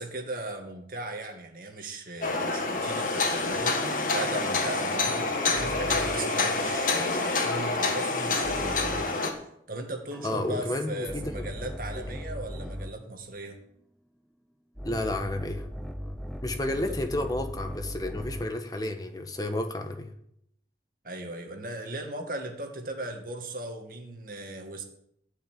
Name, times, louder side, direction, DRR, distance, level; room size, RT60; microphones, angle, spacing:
voice 1, 0.0-13.6 16.9-17.0 21.0-24.8, right 2 dB, 50° right, 4 dB, 2.1 m, -38 dB
sound 1, 2.2-9.3, left 3 dB, 45° left, 1.7 m, -27 dB
sound 2, 3.7-6.4 8.4-9.3 10.1-13.1 14.8-18.6, equal, ahead, 0.5 m, -39 dB
voice 2, 10.2-11.5 14.8-15.6 16.4-20.1, left 1 dB, 20° left, 5 dB, 1.2 m, -31 dB
13.0 x 5.8 x 9.1 m, 0.73 s
head